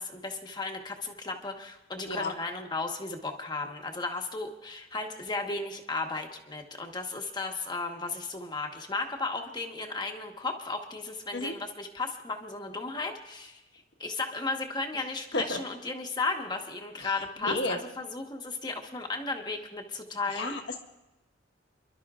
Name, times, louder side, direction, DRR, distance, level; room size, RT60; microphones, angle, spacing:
voice 1, 0.0-13.6 14.0-20.6, left 3 dB, 25° left, 3 dB, 1.3 m, -35 dB
voice 2, 17.4-17.8 20.4-20.8, left 2 dB, 75° left, 4 dB, 1.4 m, -31 dB
29.0 x 12.0 x 2.5 m, 0.99 s
head